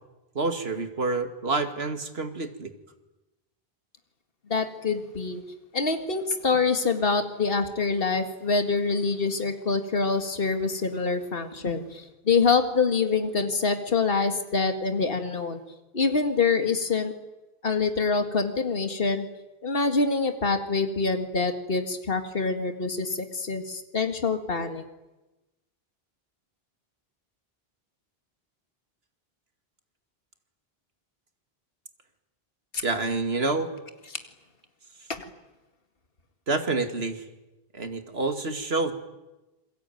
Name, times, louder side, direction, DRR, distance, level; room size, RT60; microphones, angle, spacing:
voice 1, 0.3-2.7 32.8-33.7 36.5-37.3 37.7-38.9, right 3 dB, 80° right, 7 dB, 2.5 m, -28 dB
voice 2, 4.5-5.4 5.7-15.6 15.9-17.1 17.6-19.3 19.6-24.8 32.7-32.8 35.1-35.3, left 4 dB, 65° left, 7 dB, 2.3 m, -25 dB
28.5 x 22.0 x 9.3 m, 1.1 s
omnidirectional pair, 1.0 m